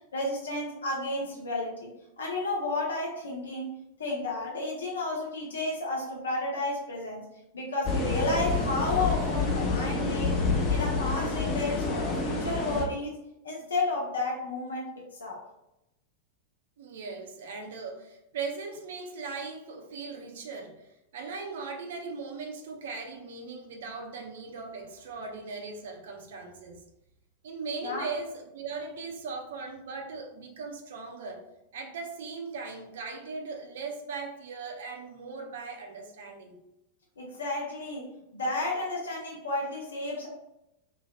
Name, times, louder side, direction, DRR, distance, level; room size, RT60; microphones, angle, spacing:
voice 1, 0.1-1.9 2.2-7.2 7.5-13.1 13.4-14.9 15.2-15.4 27.8-28.1 37.2-40.3, left 2 dB, 70° left, -2 dB, 0.6 m, -32 dB
sound 1, 7.8-12.8, left 4 dB, 35° left, 0.7 m, -28 dB
voice 2, 16.8-26.8 27.4-31.4 31.7-36.5, right 4 dB, 60° right, 3 dB, 0.5 m, -39 dB
3.0 x 2.8 x 2.3 m, 0.88 s
figure-of-eight pair, 90°, 0 cm